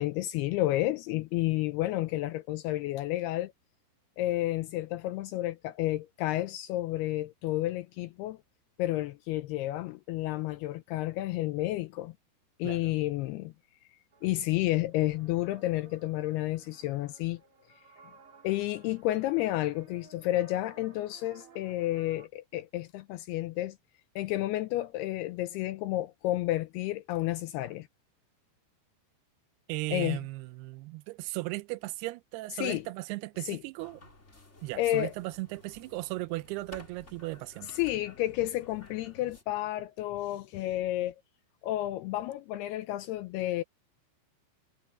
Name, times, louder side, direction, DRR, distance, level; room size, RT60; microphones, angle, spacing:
voice 1, 0.0-3.5 4.2-8.4 8.8-12.1 12.6-13.5 14.2-17.4 18.4-23.8 24.2-27.9 29.9-30.2 32.6-32.8 33.4-33.6 34.8-35.1 37.7-41.2 41.6-43.6, left 16 dB, 85° left, 2.4 m, -31 dB
sound 1, 14.1-22.3, right 4 dB, 35° right, 3.3 m, -57 dB
voice 2, 29.7-34.0 34.6-37.7, right 20 dB, 85° right, 2.3 m, -37 dB
sound 2, 33.8-39.4, left 2 dB, 20° left, 2.9 m, -54 dB
omnidirectional pair, 5.2 m